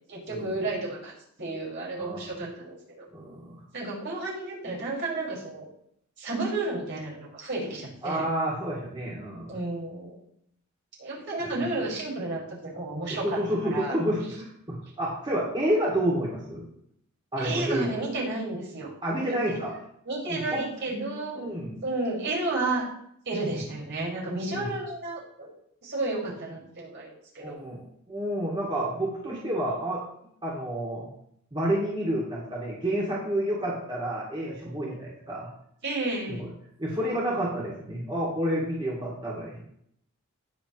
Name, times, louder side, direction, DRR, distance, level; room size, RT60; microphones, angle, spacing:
voice 1, 0.1-1.1 1.4-3.1 3.7-5.6 6.2-8.3 9.5-10.2 11.0-13.4 13.7-14.0 17.4-18.9 19.2-19.6 20.1-21.4 21.8-22.9 23.3-25.5 25.8-27.6 35.8-36.4, right 2 dB, 55° right, -4 dB, 5.5 m, -32 dB
voice 2, 2.0-2.3 3.1-3.6 8.0-9.5 13.2-16.6 17.3-18.0 19.0-19.7 20.3-20.6 21.3-21.8 23.5-23.6 24.5-24.7 27.4-30.0 30.4-31.1 31.5-35.5 36.4-36.5 36.8-39.6, right 1 dB, 25° right, -5 dB, 2.6 m, -29 dB
19.0 x 7.2 x 3.2 m, 0.71 s
head